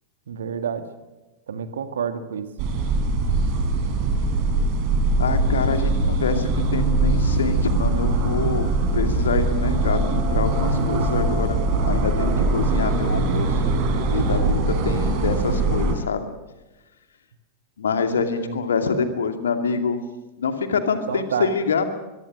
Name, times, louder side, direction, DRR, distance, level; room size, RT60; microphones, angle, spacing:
voice 1, 0.3-0.9 1.5-2.6 18.4-18.6 21.1-21.5, right 7 dB, 65° right, 9 dB, 1.9 m, -29 dB
sound 1, 2.6-15.9, right 2 dB, 45° right, 4.2 m, -22 dB
voice 2, 5.2-13.7 14.1-16.3 17.8-20.0 20.4-21.9, left 5 dB, 70° left, 7 dB, 2.4 m, -26 dB
23.0 x 23.0 x 6.2 m, 1.1 s
figure-of-eight pair, 90°, 0 cm